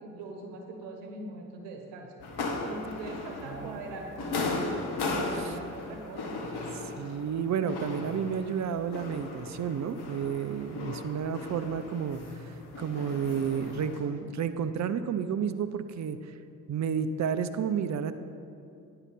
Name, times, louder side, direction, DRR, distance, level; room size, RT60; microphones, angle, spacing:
voice 1, 0.0-2.1 2.6-6.7, right 2 dB, 75° right, 3 dB, 1.0 m, -42 dB
sound 1, 2.2-14.0, left 2 dB, 65° left, 1.4 m, -37 dB
voice 2, 3.5-3.8 5.3-5.6 7.0-12.2 12.8-16.2 16.7-18.1, right 7 dB, 40° right, 10 dB, 0.6 m, -31 dB
9.7 x 5.7 x 6.0 m, 2.6 s
hypercardioid pair, 40°, 42 cm